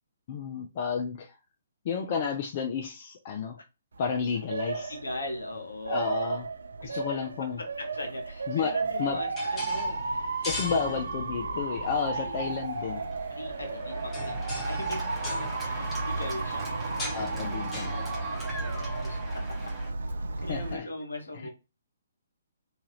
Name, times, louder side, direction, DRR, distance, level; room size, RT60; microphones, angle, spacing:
voice 1, 0.3-1.3 1.8-3.6 4.0-4.9 5.9-6.5 6.8-7.6 8.5-9.2 10.4-13.0 17.1-17.9 20.5-20.9, left 6 dB, 40° left, 0.4 m, -31 dB
Motor vehicle (road) / Siren, 3.9-20.7, right 3 dB, 65° right, 0.5 m, -34 dB
voice 2, 4.9-6.4 6.8-7.0 7.6-11.1 12.1-16.8 17.1-17.5 17.9-19.6 20.4-21.5, left 1 dB, 75° left, 0.9 m, -40 dB
sound 1, 8.8-20.2, left 2 dB, 15° left, 0.9 m, -42 dB
Cheering / Applause, 10.2-19.9, right 2 dB, 10° right, 1.0 m, -41 dB
2.8 x 2.4 x 2.9 m
figure-of-eight pair, 130°, 0 cm